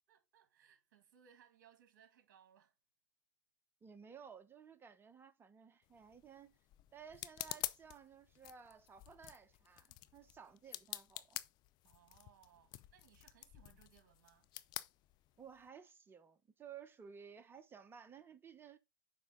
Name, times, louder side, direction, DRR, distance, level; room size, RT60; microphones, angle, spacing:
voice 1, 0.1-2.7 11.8-14.5, right 9 dB, 65° right, 2.3 m, -67 dB
voice 2, 3.8-6.6 6.9-11.4 15.4-18.8, right 7 dB, 20° right, 1.2 m, -56 dB
sound 1, 5.8-15.7, left 16 dB, 40° left, 0.6 m, -49 dB
7.3 x 5.0 x 3.8 m
hypercardioid pair, 100°, 10 cm